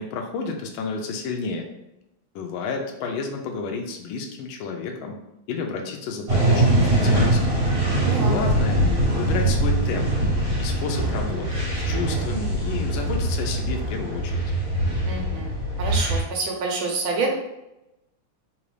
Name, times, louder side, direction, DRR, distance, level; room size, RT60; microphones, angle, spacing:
voice 1, 0.0-1.7 2.3-5.2 5.5-7.6 8.2-8.8 9.2-10.1 10.6-14.4, left 4 dB, 80° left, 3 dB, 1.4 m, -31 dB
sound 1, 6.3-16.2, right 1 dB, 45° right, 1.9 m, -22 dB
voice 2, 8.0-8.3 15.0-17.4, right 3 dB, 80° right, 0 dB, 1.6 m, -27 dB
3.8 x 2.5 x 3.2 m, 0.90 s
omnidirectional pair, 2.3 m